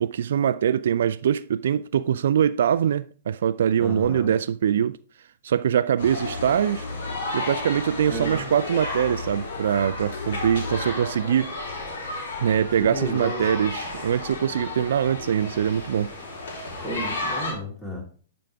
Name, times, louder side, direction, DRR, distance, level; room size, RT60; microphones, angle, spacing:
voice 1, 0.0-5.0 5.4-6.9 7.3-11.5 12.4-16.1, right 9 dB, 70° right, 0.3 m, -23 dB
voice 2, 3.8-4.3 8.1-8.5 12.8-13.5 16.8-18.0, right 1 dB, 15° left, 3.6 m, -32 dB
sound 1, 6.0-17.5, left 2 dB, 65° left, 3.7 m, -32 dB
10.5 x 5.2 x 3.5 m
hypercardioid pair, 120°, 0 cm